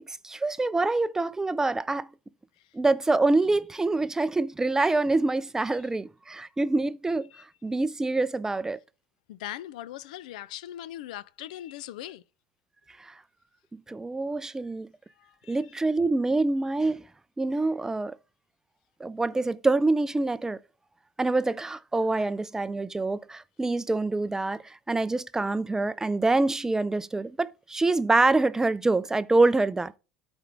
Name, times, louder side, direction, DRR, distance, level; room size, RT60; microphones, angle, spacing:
voice 1, 0.0-2.1 2.7-7.3 7.6-8.8 13.0-13.1 13.7-14.9 15.5-17.1 17.4-18.2 19.0-20.6 21.2-29.9, right 2 dB, 15° right, 0.4 m, -26 dB
voice 2, 9.3-12.2 15.2-15.8, left 13 dB, 85° left, 0.4 m, -40 dB
13.0 x 4.5 x 3.4 m
supercardioid pair, 90°, 4 cm